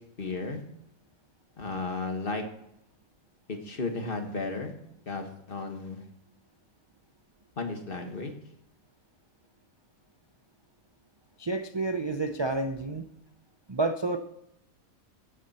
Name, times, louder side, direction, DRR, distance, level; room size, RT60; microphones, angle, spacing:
voice 1, 0.2-0.6 1.6-2.4 3.5-4.7 5.0-6.0 7.6-8.3, left 3 dB, 40° left, 5 dB, 1.7 m, -34 dB
voice 2, 11.4-13.1 13.7-14.2, right 3 dB, 35° right, 7 dB, 0.4 m, -29 dB
14.0 x 9.0 x 4.3 m, 0.80 s
omnidirectional pair, 1.5 m